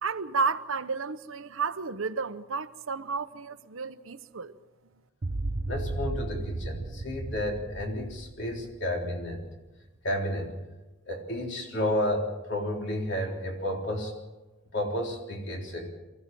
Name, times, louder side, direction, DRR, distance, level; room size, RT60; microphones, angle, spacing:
voice 1, 0.0-4.5, right 5 dB, 80° right, 0.9 m, -32 dB
sound 1, 5.2-9.5, right 2 dB, 45° right, 0.7 m, -35 dB
voice 2, 5.7-9.4 10.0-10.6 11.1-14.1 14.7-15.9, left 1 dB, 60° left, 3.8 m, -31 dB
23.5 x 15.5 x 7.7 m
head